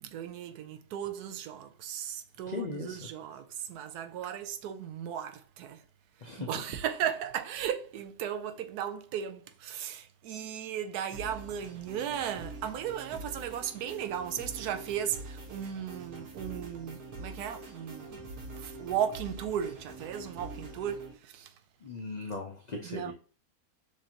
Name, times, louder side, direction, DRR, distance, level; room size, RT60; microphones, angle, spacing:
voice 1, 0.0-5.8 6.4-18.2 18.6-21.5 22.9-23.1, right 9 dB, 85° right, 1.1 m, -36 dB
voice 2, 2.5-3.1 6.2-6.5 21.8-23.1, left 3 dB, 50° left, 0.5 m, -38 dB
sound 1, 11.1-21.1, right 2 dB, 70° right, 1.5 m, -45 dB
6.5 x 2.6 x 2.8 m
omnidirectional pair, 1.6 m